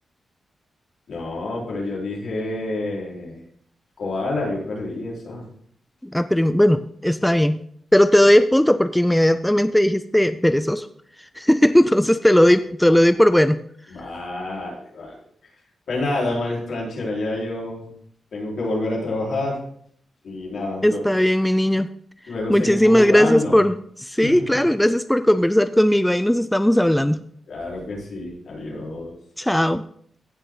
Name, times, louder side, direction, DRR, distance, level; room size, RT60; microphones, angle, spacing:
voice 1, 1.1-3.4 4.0-5.4 12.4-12.5 12.8-13.0 13.9-15.2 15.9-17.9 18.3-19.6 20.2-21.0 22.3-23.6 24.2-24.6 27.5-29.1, left 2 dB, 70° left, -4 dB, 4.5 m, -28 dB
voice 2, 6.1-7.6 7.9-10.9 11.4-13.6 20.8-21.9 22.5-27.2 29.4-29.8, left 1 dB, 5° left, 12 dB, 0.4 m, -17 dB
16.0 x 6.6 x 3.9 m, 0.63 s
wide cardioid pair, 115°, 0 cm